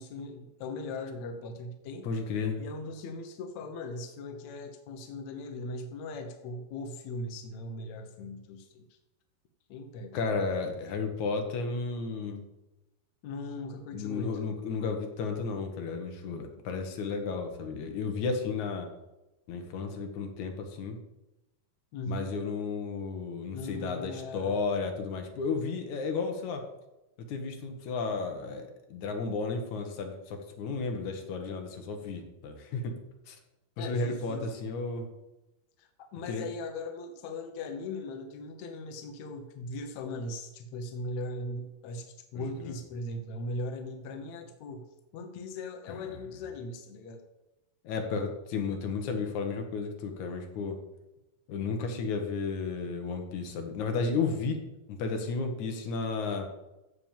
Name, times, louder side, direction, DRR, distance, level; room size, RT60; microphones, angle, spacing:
voice 1, 0.0-2.1 2.6-9.0 9.7-10.1 13.2-14.4 21.9-22.3 23.5-24.6 33.8-34.7 35.8-44.9 45.1-47.2, left 2 dB, 75° left, 5 dB, 1.7 m, -39 dB
voice 2, 2.0-2.6 10.1-12.4 13.9-18.9 19.5-21.0 22.1-26.6 27.3-33.0 33.3-33.4 33.8-35.1 36.3-36.5 42.3-42.7 45.9-46.0 47.8-50.8 51.5-54.6 54.9-56.5, left 4 dB, 60° left, 4 dB, 2.3 m, -33 dB
14.5 x 5.0 x 7.3 m, 0.98 s
omnidirectional pair, 4.6 m